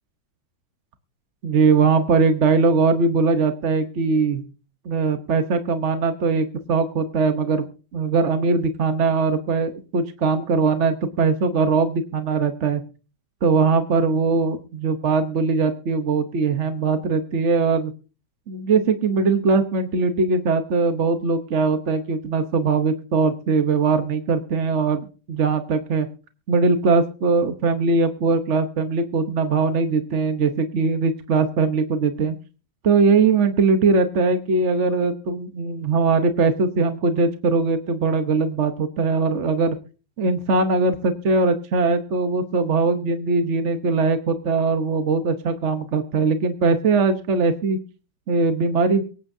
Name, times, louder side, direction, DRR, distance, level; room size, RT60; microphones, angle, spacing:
voice 1, 1.4-4.4 4.8-7.7 7.9-12.8 13.4-17.9 18.5-26.1 26.5-32.3 32.8-39.8 40.2-47.8 48.3-49.0, right 4 dB, 50° right, 7 dB, 1.1 m, -21 dB
23.5 x 9.0 x 2.7 m, 0.36 s
omnidirectional pair, 1.9 m